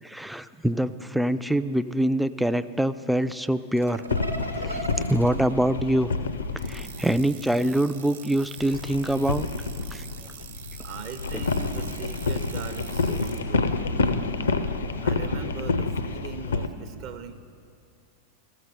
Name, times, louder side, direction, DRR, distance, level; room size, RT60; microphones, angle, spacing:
voice 1, 0.0-4.0 4.5-4.8 5.1-6.1 6.6-9.5 9.9-10.0, right 1 dB, ahead, 12 dB, 0.3 m, -25 dB
sound 1, 3.8-6.5 7.8-9.3 9.9-14.1, right 1 dB, 85° right, 0.7 m, -41 dB
sound 2, 4.1-7.2 8.6-16.7, left 3 dB, 70° left, 0.5 m, -28 dB
sound 3, 6.6-13.4, right 8 dB, 60° right, 1.0 m, -45 dB
voice 2, 10.1-14.1 15.0-17.3, right 7 dB, 40° right, 7 dB, 0.6 m, -41 dB
14.5 x 6.6 x 5.9 m, 2.4 s
figure-of-eight pair, 90°, 0 cm